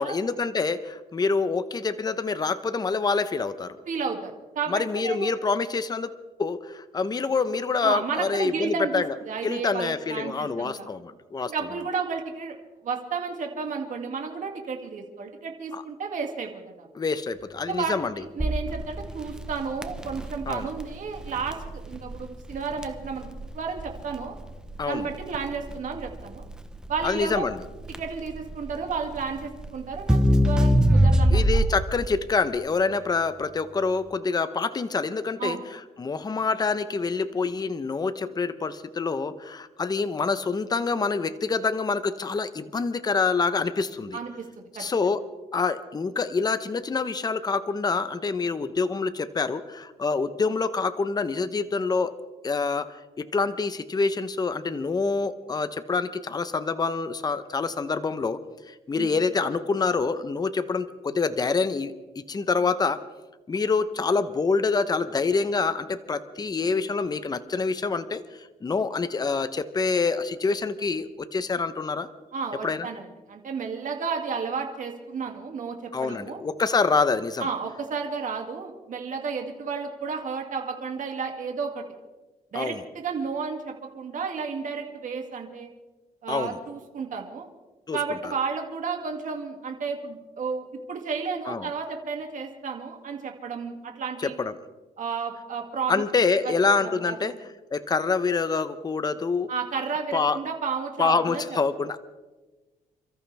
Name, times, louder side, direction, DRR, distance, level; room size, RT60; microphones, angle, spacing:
voice 1, 0.0-3.8 4.7-6.1 6.4-9.1 9.4-11.5 15.7-15.8 16.9-18.1 20.5-20.7 24.8-25.1 27.0-27.6 31.3-44.2 44.8-45.2 45.5-52.1 52.4-58.4 58.7-63.0 63.5-72.1 72.6-72.9 75.9-77.5 82.5-82.8 86.3-86.6 87.9-88.3 91.5-91.7 94.2-94.6 95.9-97.4 97.7-99.5 100.1-100.4 101.0-102.0, left 4 dB, 25° left, 11 dB, 0.8 m, -26 dB
voice 2, 3.9-5.3 7.8-10.9 11.4-12.6 12.8-16.9 17.7-24.3 24.8-26.4 26.9-27.5 28.0-31.4 35.4-35.6 44.1-44.8 58.9-59.1 72.3-76.4 77.4-81.8 82.5-85.7 86.2-87.5 87.9-94.4 95.0-96.0 96.4-96.5 96.8-97.3 99.5-101.4, right 5 dB, 55° right, 3 dB, 2.4 m, -32 dB
Crackle, 18.4-32.0, equal, 5° right, 0.9 m, -24 dB
29.0 x 14.0 x 3.5 m, 1.2 s
cardioid pair, 110°, 16 cm